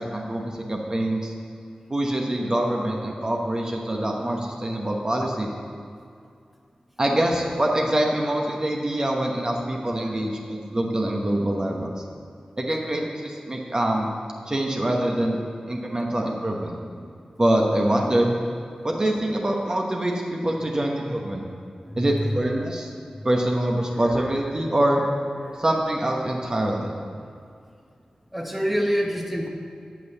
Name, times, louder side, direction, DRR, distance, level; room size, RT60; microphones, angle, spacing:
voice 1, 0.0-1.3 1.9-5.5 7.0-12.0 12.6-14.1 14.5-15.4 15.7-16.8 17.4-18.3 18.8-21.4 22.0-22.9 23.2-25.0 25.6-26.9, right 1 dB, 35° right, 0 dB, 1.1 m, -24 dB
voice 2, 28.3-29.5, equal, 5° right, 0 dB, 1.2 m, -26 dB
8.4 x 6.4 x 6.9 m, 2.3 s
cardioid pair, 55°, 2 cm